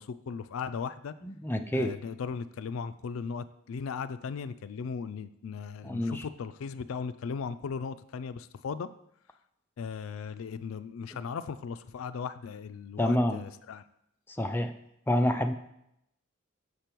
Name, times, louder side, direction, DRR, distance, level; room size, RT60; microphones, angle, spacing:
voice 1, 0.0-1.1 1.7-8.9 9.8-13.8, left 5 dB, 75° left, 13 dB, 0.4 m, -37 dB
voice 2, 1.2-2.0 5.8-6.3 13.0-13.4 14.3-14.7 15.1-15.5, left 1 dB, 10° left, 7 dB, 0.4 m, -28 dB
6.7 x 5.2 x 4.5 m, 0.79 s
head